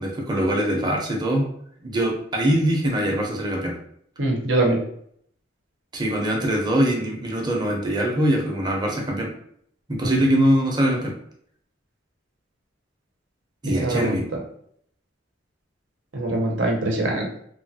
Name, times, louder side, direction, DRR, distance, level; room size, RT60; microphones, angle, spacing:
voice 1, 0.0-1.5 1.8-3.8 5.9-9.3 9.9-11.1 13.6-14.3, right 1 dB, 25° right, -1 dB, 0.6 m, -22 dB
voice 2, 4.2-4.8 10.0-10.1 13.7-14.2 16.1-17.4, right 2 dB, 85° right, 0 dB, 0.8 m, -23 dB
3.1 x 2.3 x 2.7 m, 0.67 s
head